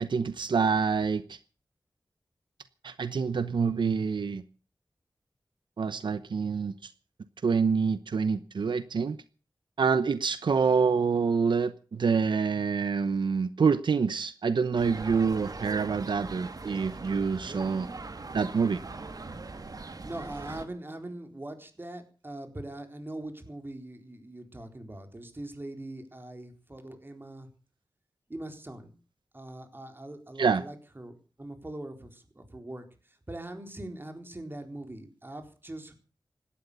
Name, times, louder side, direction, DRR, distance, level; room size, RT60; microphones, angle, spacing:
voice 1, 0.0-1.4 2.8-4.4 5.8-6.9 7.4-9.2 9.8-17.9 18.3-18.8 30.4-30.6, right 5 dB, 85° right, 0.9 m, -26 dB
sound 1, 14.8-20.7, right 3 dB, 55° right, 1.9 m, -41 dB
voice 2, 20.0-27.5 28.3-28.9 29.3-35.9, right 1 dB, 30° right, 4.0 m, -42 dB
17.5 x 12.0 x 6.9 m
wide cardioid pair, 80°, 8 cm